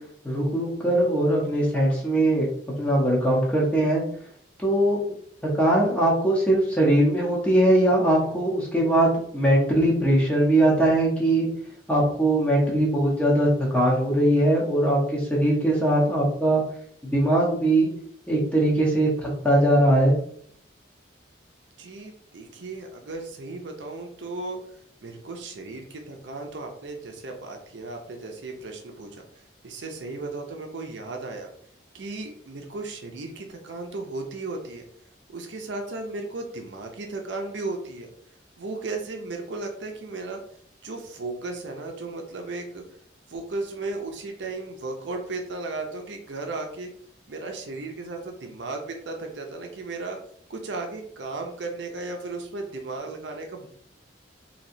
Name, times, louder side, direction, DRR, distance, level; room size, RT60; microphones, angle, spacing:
voice 1, 0.2-2.5 2.8-4.0 4.6-5.2 5.6-11.5 11.9-16.6 17.1-17.9 18.3-20.2, right 1 dB, 5° left, -4 dB, 0.9 m, -21 dB
voice 2, 21.8-24.6 25.0-29.1 29.6-31.5 31.9-34.8 35.3-38.1 38.6-40.4 40.8-42.8 43.3-46.9 47.3-50.2 50.5-53.7, right 3 dB, 75° right, 3 dB, 0.6 m, -35 dB
3.0 x 2.8 x 2.6 m, 0.63 s
head